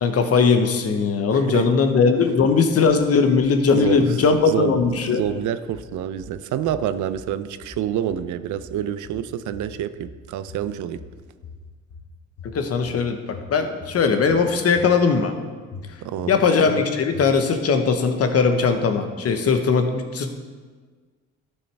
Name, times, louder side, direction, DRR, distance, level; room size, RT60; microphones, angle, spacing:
voice 1, 0.0-5.2 12.5-13.2 13.5-15.3 16.3-20.3, left 5 dB, 50° left, 7 dB, 1.0 m, -19 dB
voice 2, 1.3-1.7 3.7-11.0 16.0-16.3, right 10 dB, 75° right, 12 dB, 0.5 m, -28 dB
sound 1, 4.8-5.4 5.7-6.4 6.7-7.3 7.6-8.3 8.6-9.3 9.5-10.2 10.5-11.2 11.4-12.1 12.4-13.0 13.3-14.0 14.3-14.9 15.2-15.3 15.7-16.4 16.7-16.8 17.1-17.6, left 4 dB, 80° left, 2.1 m, -42 dB
12.0 x 6.5 x 3.3 m, 1.5 s
cardioid pair, 90°, 30 cm